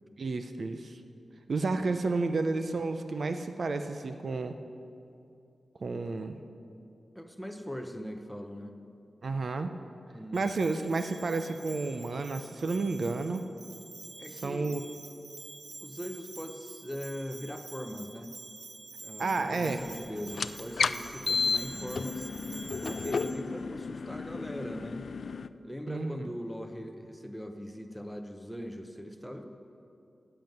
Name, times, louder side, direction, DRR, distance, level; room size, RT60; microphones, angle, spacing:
voice 1, 0.2-1.0 1.5-4.5 5.8-6.4 9.2-9.7 10.3-13.4 14.4-14.8 19.2-19.8 25.9-26.2, right 3 dB, 50° right, 8 dB, 0.5 m, -31 dB
voice 2, 7.1-8.8 10.1-10.4 14.2-14.7 15.8-18.3 19.0-22.3 22.8-25.1 25.6-29.4, equal, ahead, 5 dB, 0.8 m, -40 dB
Bell, 10.3-23.3, right 3 dB, 70° right, 1.0 m, -48 dB
sound 1, 20.3-25.5, left 5 dB, 60° left, 0.3 m, -32 dB
10.5 x 9.0 x 7.8 m, 2.6 s
wide cardioid pair, 140°, 0 cm